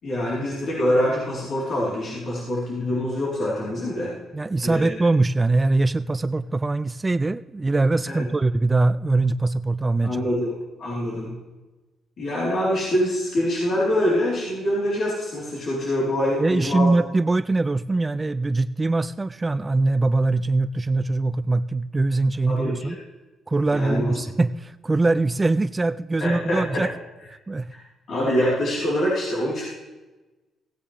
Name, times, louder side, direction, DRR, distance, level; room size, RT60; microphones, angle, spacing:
voice 1, 0.0-4.1 4.6-4.9 8.1-8.2 10.0-11.3 12.2-16.9 22.5-23.0 23.7-24.2 26.2-26.8 28.1-29.7, left 1 dB, 60° left, -6 dB, 3.9 m, -25 dB
voice 2, 4.3-10.3 16.4-23.0 23.5-26.9 27.3-27.7, right 2 dB, 20° right, 15 dB, 0.3 m, -22 dB
17.0 x 9.7 x 3.4 m, 1.1 s
cardioid pair, 90°, 0 cm